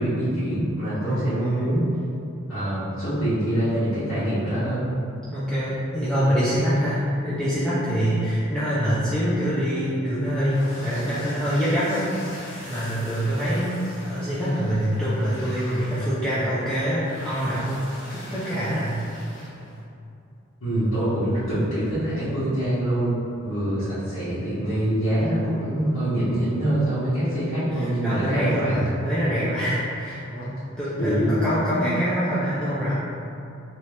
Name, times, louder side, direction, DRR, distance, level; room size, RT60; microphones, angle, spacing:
voice 1, 0.0-1.9 2.5-4.8 20.6-23.1 23.4-28.8 31.0-31.4, right 1 dB, 80° left, -15 dB, 1.3 m, -25 dB
voice 2, 1.0-1.7 5.3-17.8 18.1-19.0 27.7-32.9, equal, 5° left, -12 dB, 0.4 m, -25 dB
sound 1, 10.2-19.8, equal, 60° left, 0.7 m, -41 dB
2.9 x 2.8 x 3.2 m, 2.6 s
head